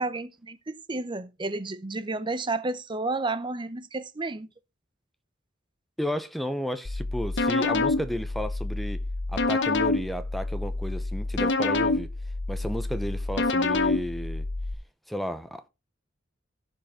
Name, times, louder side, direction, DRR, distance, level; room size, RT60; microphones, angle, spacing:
voice 1, 0.0-4.5, right 3 dB, 25° right, 0.7 m, -31 dB
voice 2, 6.0-9.0 9.3-12.1 12.5-14.5 15.1-15.7, equal, ahead, 0.8 m, -32 dB
sound 1, 6.9-14.7, left 3 dB, 60° left, 1.0 m, -27 dB
16.0 x 5.5 x 3.7 m
head